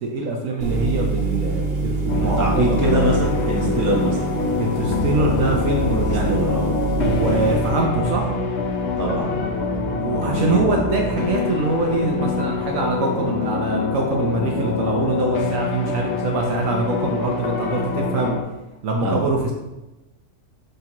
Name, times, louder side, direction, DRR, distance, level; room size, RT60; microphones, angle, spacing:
voice 1, 0.0-2.8 4.6-6.4 7.0-8.3 10.0-18.3 18.8-19.5, right 2 dB, 75° right, 0 dB, 1.2 m, -24 dB
sound 1, 0.6-7.7, right 3 dB, 50° right, 1.0 m, -25 dB
sound 2, 2.1-18.4, left 4 dB, 55° left, 1.0 m, -25 dB
voice 2, 2.1-4.2 5.9-6.7 9.0-9.3 10.1-10.8 19.0-19.2, right 1 dB, 15° right, -4 dB, 0.8 m, -23 dB
sound 3, 4.2-13.0, equal, ahead, 1.4 m, -40 dB
6.7 x 5.9 x 2.9 m, 1.0 s
omnidirectional pair, 1.4 m